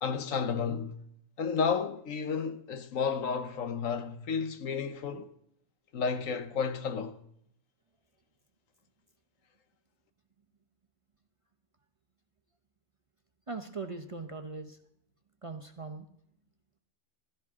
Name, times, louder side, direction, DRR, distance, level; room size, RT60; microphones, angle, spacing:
voice 1, 0.0-1.0 1.4-5.3 5.9-7.2, left 5 dB, 75° left, 1.3 m, -32 dB
voice 2, 13.5-14.8 15.4-16.1, right 4 dB, 30° right, 0.8 m, -40 dB
15.0 x 13.5 x 3.6 m
omnidirectional pair, 1.4 m